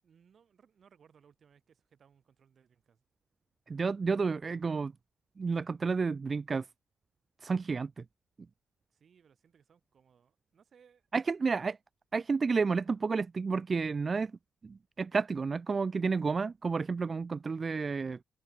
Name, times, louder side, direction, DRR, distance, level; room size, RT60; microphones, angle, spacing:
voice 1, 0.0-3.0 8.9-11.1, right 7 dB, 50° right, 7.5 m, -64 dB
voice 2, 3.7-4.9 5.4-6.7 7.4-8.0 11.1-11.8 12.1-14.3 14.6-18.2, right 4 dB, 35° right, 0.6 m, -31 dB
cardioid pair, 90°, 0 cm